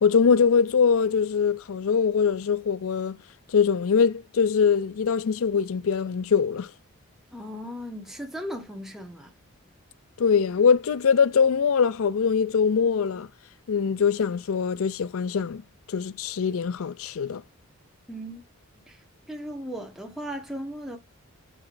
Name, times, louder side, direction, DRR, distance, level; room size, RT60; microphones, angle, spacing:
voice 1, 0.0-3.2 3.5-6.7 10.2-13.3 13.7-15.6 15.9-17.4, left 6 dB, 70° left, 0.4 m, -22 dB
voice 2, 7.3-9.3 18.1-18.4 18.9-19.0 19.3-21.0, equal, ahead, 1.3 m, -36 dB
6.5 x 5.7 x 2.6 m
head